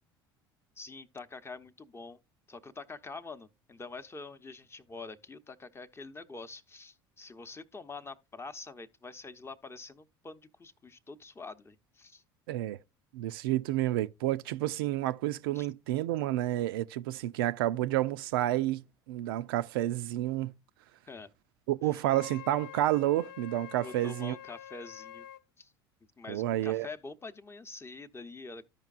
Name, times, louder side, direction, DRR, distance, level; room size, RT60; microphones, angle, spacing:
voice 1, 0.8-2.2 2.5-12.2 15.5-15.7 21.1-21.3 23.8-25.3 25.6-25.7 26.2-28.6, left 3 dB, 20° left, 0.7 m, -46 dB
voice 2, 12.5-12.8 13.1-20.5 21.7-24.4 26.3-26.9, right 14 dB, 75° right, 0.4 m, -30 dB
Wind instrument woodwind instrument, 22.1-25.4, left 11 dB, 70° left, 0.4 m, -47 dB
13.5 x 5.2 x 2.4 m
hypercardioid pair, 70°, 12 cm